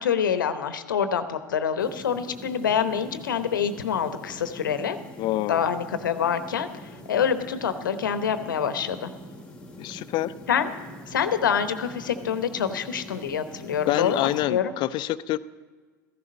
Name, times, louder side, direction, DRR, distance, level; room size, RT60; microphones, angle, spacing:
voice 1, 0.0-5.0 5.5-6.7 7.1-9.1 10.5-10.7 11.1-14.7, left 7 dB, 80° left, 11 dB, 0.9 m, -26 dB
sound 1, 1.8-14.4, equal, 10° left, 1.6 m, -44 dB
voice 2, 5.2-5.6 9.8-10.3 13.9-15.4, left 15 dB, 45° left, 16 dB, 0.5 m, -26 dB
14.5 x 11.0 x 5.3 m, 1.5 s
hypercardioid pair, 90°, 10 cm